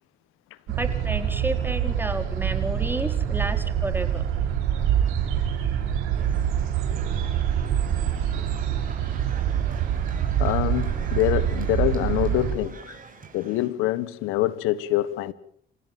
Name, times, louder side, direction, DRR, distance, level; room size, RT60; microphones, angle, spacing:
sound 1, 0.7-12.5, right 9 dB, 80° right, 5.1 m, -25 dB
voice 1, 0.8-4.2, right 1 dB, 10° right, 4.7 m, -31 dB
sound 2, 6.1-13.7, right 5 dB, 40° right, 7.3 m, -46 dB
voice 2, 10.4-13.0 13.3-15.3, left 15 dB, 80° left, 1.4 m, -25 dB
28.0 x 15.5 x 7.6 m
supercardioid pair, 55°, 20 cm